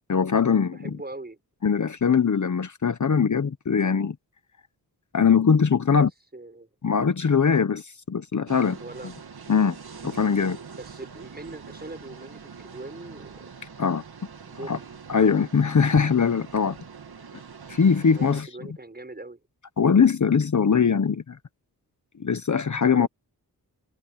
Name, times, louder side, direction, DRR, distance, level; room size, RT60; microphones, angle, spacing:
voice 1, 0.1-0.9 1.6-4.2 5.1-6.1 6.8-8.8 9.5-9.8 10.0-10.6 13.8-14.0 14.7-14.8 15.1-16.8 17.7-18.5 19.8-21.4 22.2-23.1, left 6 dB, 45° left, 1.1 m, -21 dB
voice 2, 0.7-1.4 5.9-6.1 6.3-6.7 8.8-9.1 10.7-13.5 14.4-14.9 15.2-15.5 18.1-19.4 22.9-23.1, right 2 dB, 25° right, 5.9 m, -41 dB
sound 1, 8.5-18.4, right 6 dB, 65° right, 2.5 m, -44 dB
wide cardioid pair, 80°, 40 cm